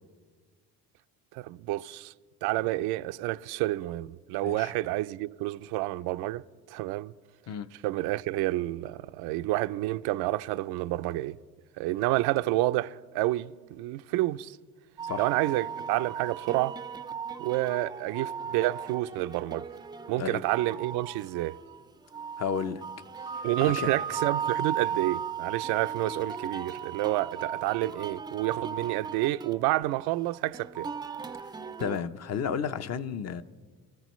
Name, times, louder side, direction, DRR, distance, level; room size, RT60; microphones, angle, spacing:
voice 1, 1.3-2.1 2.4-7.1 7.8-11.4 11.8-14.6 15.2-16.8 17.4-19.7 20.1-21.6 23.4-30.9, right 17 dB, 90° right, 0.5 m, -29 dB
sound 1, 15.0-32.0, right 7 dB, 10° right, 0.4 m, -37 dB
voice 2, 22.4-22.8 23.3-23.9 31.8-33.4, left 7 dB, 45° left, 0.7 m, -32 dB
27.0 x 14.0 x 3.1 m
cardioid pair, 115°, 37 cm